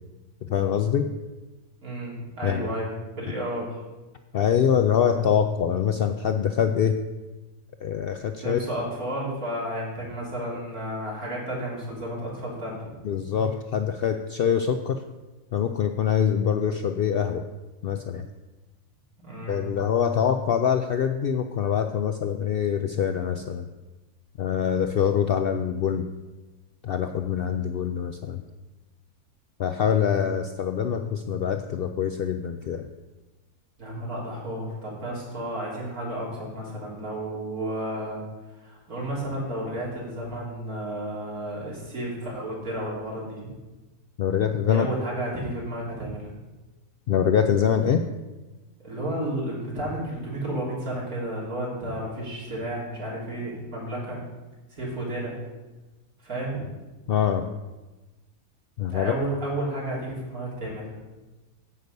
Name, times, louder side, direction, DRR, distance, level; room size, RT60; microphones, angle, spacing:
voice 1, 0.4-1.1 2.4-2.7 4.3-7.0 7.8-8.6 13.0-15.0 15.5-17.5 17.8-18.2 19.5-23.7 24.4-26.1 26.8-28.4 29.6-32.9 44.2-44.9 47.1-48.1 57.1-57.5 58.8-59.2, left 8 dB, 90° left, 7 dB, 0.5 m, -24 dB
voice 2, 1.8-2.9 3.2-3.7 8.4-12.8 19.2-19.7 33.8-38.2 38.6-43.5 44.7-46.3 48.8-54.2 54.7-55.4 56.2-56.6 58.9-60.9, right 1 dB, 75° right, -5 dB, 3.7 m, -32 dB
9.7 x 8.1 x 5.3 m, 1.2 s
omnidirectional pair, 1.6 m